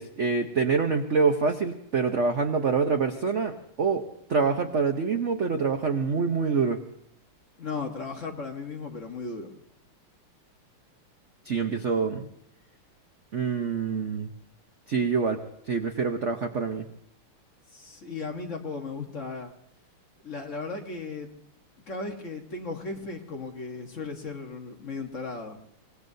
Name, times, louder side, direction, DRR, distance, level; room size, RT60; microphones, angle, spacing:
voice 1, 0.0-4.0 4.3-6.8 11.4-12.3 13.3-14.3 14.9-15.4 15.7-16.9, right 5 dB, 65° right, 5 dB, 0.7 m, -26 dB
voice 2, 7.6-9.5 17.7-19.5 20.2-21.3 21.9-25.6, left 4 dB, 40° left, 2 dB, 1.3 m, -36 dB
24.5 x 18.5 x 2.7 m, 0.72 s
omnidirectional pair, 2.4 m